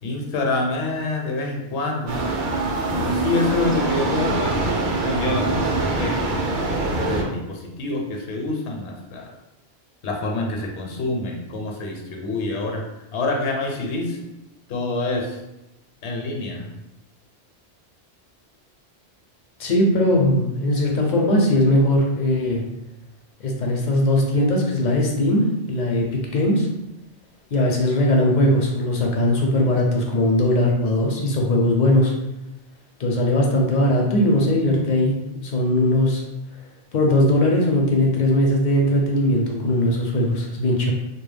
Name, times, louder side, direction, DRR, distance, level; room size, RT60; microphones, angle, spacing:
voice 1, 0.0-2.2 3.0-4.6 4.9-6.6 7.0-9.3 10.0-12.8 13.1-14.2 14.7-15.4 16.0-16.7, left 2 dB, 80° left, 1 dB, 0.9 m, -27 dB
sound 1, 2.1-7.2, right 2 dB, 60° right, 0.6 m, -23 dB
voice 2, 19.6-22.6 23.4-26.7 27.5-32.1 33.0-35.1 35.4-36.2 36.9-40.9, left 1 dB, 55° left, 0 dB, 0.5 m, -19 dB
2.2 x 2.1 x 3.2 m, 0.94 s
omnidirectional pair, 1.1 m